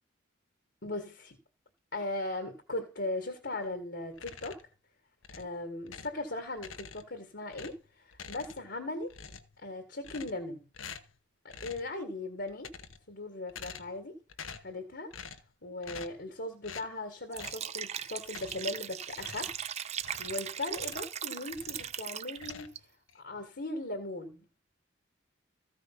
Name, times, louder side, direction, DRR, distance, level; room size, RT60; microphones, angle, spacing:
voice 1, 0.8-1.4 1.9-4.6 5.4-9.1 9.6-10.6 11.4-12.7 13.1-14.2 14.6-15.1 15.6-19.5 20.2-22.7 23.1-24.6, left 2 dB, 60° left, 1.8 m, -38 dB
sound 1, 4.1-4.8 5.2-6.2 6.6-7.2 7.5-8.8 9.1-9.6 10.0-10.5 10.7-11.2 11.5-11.9 12.5-13.1 13.5-14.0 14.3-14.8 15.1-15.5 15.8-16.3 16.6-16.9 17.3-17.7 18.3-18.8 19.1-21.2 21.5-22.0 22.3-23.2, left 6 dB, 90° left, 1.0 m, -47 dB
Liquid, 17.3-22.8, right 9 dB, 35° right, 0.4 m, -38 dB
14.5 x 5.1 x 5.9 m
head